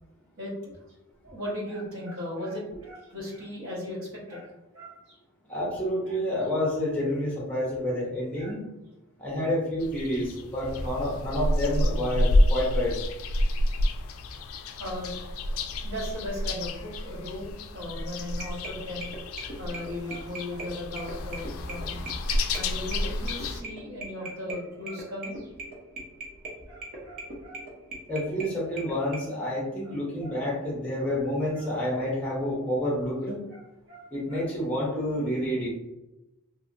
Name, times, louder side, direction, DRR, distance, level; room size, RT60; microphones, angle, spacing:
voice 1, 0.4-0.7 1.2-5.2 6.1-6.2 8.4-8.6 13.8-13.9 14.4-22.1 22.5-25.5 26.7-27.6 29.0-29.1 29.4-29.6 29.8-29.9 30.2-30.4 31.1-31.2 31.5-31.7 33.5-33.6 33.9-34.4, left 1 dB, 60° right, -4 dB, 1.0 m, -38 dB
voice 2, 5.5-8.7 9.2-12.9 28.1-33.4 34.1-35.7, left 1 dB, 5° left, -4 dB, 0.6 m, -29 dB
sound 1, 9.8-23.6, left 1 dB, 70° left, 0.3 m, -29 dB
sound 2, 18.3-29.2, right 2 dB, 40° right, 0.6 m, -41 dB
2.7 x 2.7 x 2.5 m, 0.97 s
head